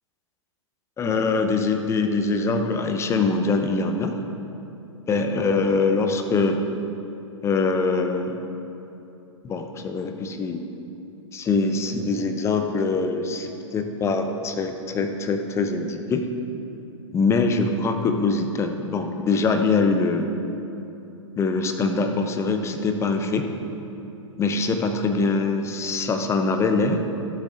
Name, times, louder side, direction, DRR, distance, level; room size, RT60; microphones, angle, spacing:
voice 1, 1.0-4.1 5.1-6.6 7.4-8.3 9.4-10.6 11.3-16.3 17.1-20.3 21.4-23.5 24.4-27.0, left 3 dB, 15° left, 5 dB, 0.7 m, -23 dB
12.5 x 7.6 x 3.7 m, 2.9 s
figure-of-eight pair, 110°, 16 cm